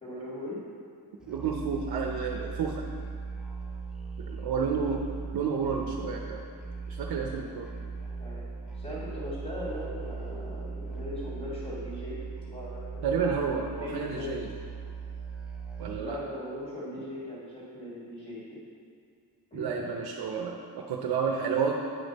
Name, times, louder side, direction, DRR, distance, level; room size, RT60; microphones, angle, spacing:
voice 1, 0.0-0.6 4.5-4.6 7.4-7.9 8.2-8.4 8.7-13.0 13.8-14.3 15.9-18.6 19.5-19.9, left 1 dB, 20° left, -8 dB, 1.8 m, -39 dB
Musical instrument, 1.2-16.2, right 4 dB, ahead, 0.5 m, -39 dB
voice 2, 1.3-2.9 4.2-5.1 5.3-6.4 6.9-7.7 13.0-14.5 15.8-16.2 19.5-21.7, right 6 dB, 65° right, 1 dB, 0.7 m, -30 dB
9.0 x 5.4 x 4.0 m, 2.4 s
wide cardioid pair, 180°, 40 cm